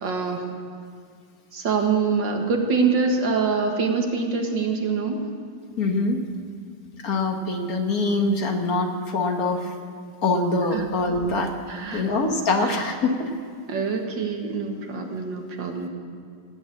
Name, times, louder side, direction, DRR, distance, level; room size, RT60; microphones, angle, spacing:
voice 1, 0.0-0.4 1.5-5.2 10.7-10.9 11.7-12.1 12.6-12.8 13.7-15.9, right 5 dB, 90° right, 3 dB, 2.3 m, -25 dB
voice 2, 5.8-6.2 7.0-9.7 10.2-11.5 11.9-13.3, left 3 dB, 55° left, 4 dB, 1.7 m, -24 dB
18.0 x 8.9 x 8.5 m, 2.2 s
omnidirectional pair, 1.9 m